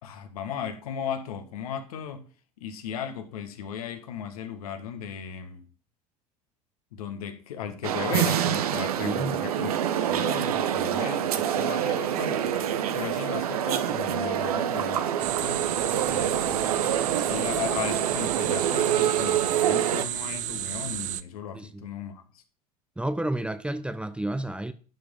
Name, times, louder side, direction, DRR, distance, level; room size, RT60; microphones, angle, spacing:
voice 1, 0.0-2.3 2.6-5.6 6.9-9.7 10.0-15.6 16.0-16.6 17.2-22.4, left 8 dB, 70° left, 1.7 m, -36 dB
sound 1, 7.8-20.1, right 10 dB, 75° right, 1.0 m, -26 dB
voice 2, 9.0-9.4 21.5-21.9 23.0-24.7, right 1 dB, 5° right, 0.8 m, -31 dB
sound 2, 15.2-21.2, right 13 dB, 40° right, 0.6 m, -32 dB
11.5 x 5.1 x 5.4 m
hypercardioid pair, 80°, 19 cm